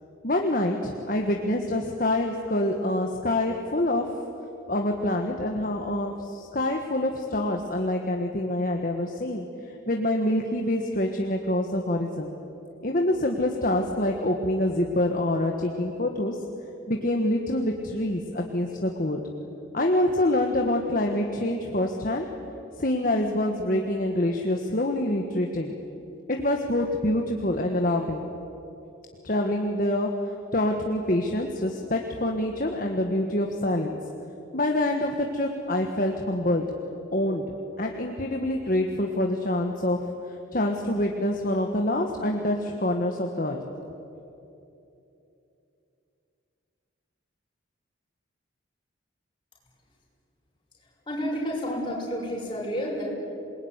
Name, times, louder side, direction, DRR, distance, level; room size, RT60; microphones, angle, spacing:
voice 1, 0.2-4.1 4.7-12.3 12.8-16.4 16.9-19.2 19.7-22.3 22.8-25.8 26.3-28.3 29.2-30.1 30.5-34.0 34.5-36.6 37.1-37.4 37.8-40.0 40.3-43.6, left 1 dB, 45° left, 2 dB, 1.6 m, -26 dB
voice 2, 51.1-53.1, equal, 25° left, -3 dB, 6.9 m, -30 dB
27.5 x 20.5 x 9.7 m, 2.9 s
head